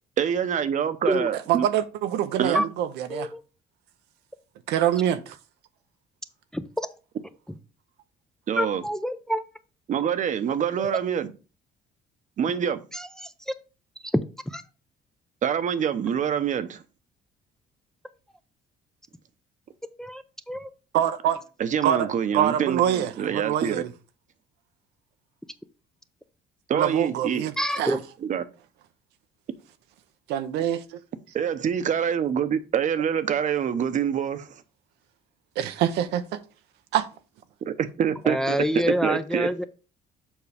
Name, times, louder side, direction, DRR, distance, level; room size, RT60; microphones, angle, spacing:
voice 1, 0.2-1.6 2.4-2.7 8.5-8.8 9.9-11.3 12.4-12.8 15.4-16.8 21.6-23.8 26.7-27.4 28.3-28.4 31.3-34.5 37.7-38.6 38.9-39.5, right 8 dB, 50° right, 0.8 m, -26 dB
voice 2, 1.1-3.3 4.7-5.4 20.9-21.4 21.8-22.1 22.3-23.9 26.7-28.0 30.3-30.8 35.6-36.4 36.9-37.1, right 11 dB, 85° right, 0.7 m, -25 dB
voice 3, 3.1-3.4 6.5-6.9 8.6-9.4 10.8-11.0 12.9-13.5 14.5-14.6 20.0-20.7 27.6-28.0 38.2-39.6, equal, 5° left, 0.5 m, -27 dB
7.3 x 5.2 x 3.4 m
cardioid pair, 110°, 17 cm